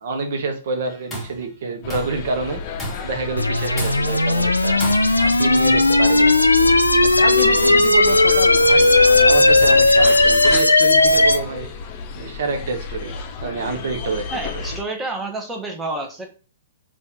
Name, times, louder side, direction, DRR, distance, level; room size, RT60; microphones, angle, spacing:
voice 1, 0.0-2.6 3.0-4.8 5.2-6.5 7.0-11.7 12.2-13.1 13.4-14.2 14.5-14.6, right 4 dB, 55° right, 4 dB, 0.8 m, -27 dB
Tools, 0.9-1.4 1.9-2.3 2.8-3.2 3.8-4.3 4.8-5.4, equal, 15° left, 1.5 m, -32 dB
sound 1, 1.8-14.8, left 5 dB, 40° left, 0.6 m, -31 dB
sound 2, 3.4-11.4, left 2 dB, 90° left, 0.4 m, -15 dB
voice 2, 14.3-16.3, right 2 dB, 10° right, 2 dB, 0.8 m, -29 dB
4.1 x 2.5 x 3.5 m, 0.35 s
figure-of-eight pair, 115°, 0 cm